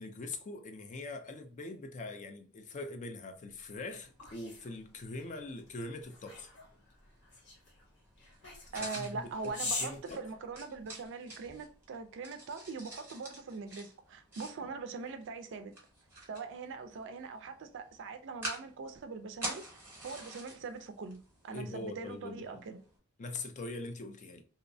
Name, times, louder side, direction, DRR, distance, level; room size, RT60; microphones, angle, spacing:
voice 1, 0.0-6.5 8.8-9.5 9.8-10.2 21.5-22.7 23.2-24.4, left 2 dB, 35° left, 0.4 m, -42 dB
sound 1, 3.6-11.0, left 3 dB, 55° left, 0.9 m, -43 dB
sound 2, 4.0-23.0, right 2 dB, 10° right, 0.9 m, -49 dB
voice 2, 8.7-15.7 16.3-22.8, right 4 dB, 55° right, 0.4 m, -42 dB
2.7 x 2.1 x 2.6 m
head